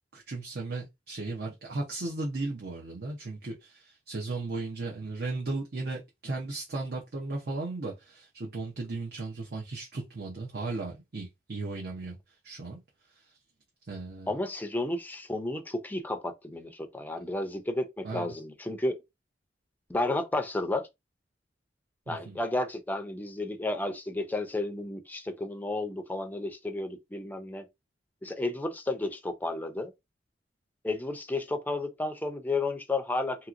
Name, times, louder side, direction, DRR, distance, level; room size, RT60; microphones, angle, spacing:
voice 1, 0.1-12.2 12.4-12.8 13.1-13.3 13.9-14.3 18.0-18.3 22.1-22.4, right 3 dB, 60° right, 0.7 m, -36 dB
voice 2, 14.3-19.0 19.9-20.9 22.1-27.7 28.2-29.9 30.8-33.5, left 2 dB, 10° left, 0.5 m, -32 dB
2.9 x 2.8 x 2.4 m
head